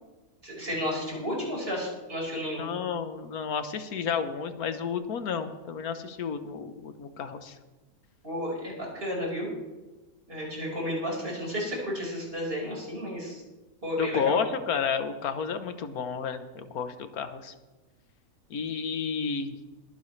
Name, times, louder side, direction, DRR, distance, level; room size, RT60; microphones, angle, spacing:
voice 1, 0.4-2.7 8.2-9.5 10.3-13.4 13.8-14.4, equal, 40° right, -3 dB, 5.1 m, -32 dB
voice 2, 2.6-7.6 14.0-17.5 18.5-19.5, left 6 dB, 85° left, 9 dB, 1.5 m, -31 dB
22.5 x 9.9 x 3.2 m, 1.2 s
omnidirectional pair, 1.5 m